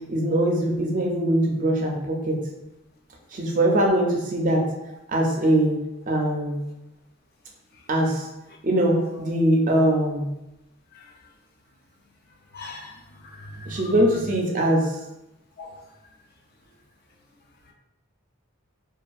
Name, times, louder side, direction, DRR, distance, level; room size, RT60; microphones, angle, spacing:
voice 1, 0.1-2.4 3.3-4.6 5.1-5.7 6.1-6.6 7.9-8.3 8.6-10.3 13.7-15.0, right 1 dB, 35° right, 0.4 m, -22 dB
voice 2, 12.5-12.9 13.4-13.7 15.6-15.8, left 2 dB, 45° left, 0.3 m, -39 dB
2.5 x 2.5 x 2.3 m
head